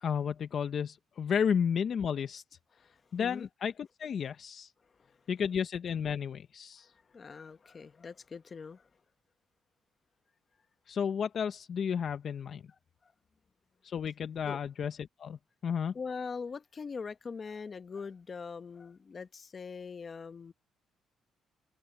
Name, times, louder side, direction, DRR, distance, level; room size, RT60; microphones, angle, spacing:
voice 1, 0.0-2.4 3.1-4.7 5.3-6.9 10.9-12.6 13.8-15.9, left 7 dB, 55° left, 0.8 m, -32 dB
voice 2, 3.2-3.5 5.0-5.2 7.1-8.9 12.7-13.1 14.4-14.6 15.9-20.5, left 5 dB, 40° left, 1.1 m, -42 dB
cardioid pair, 90°, 0 cm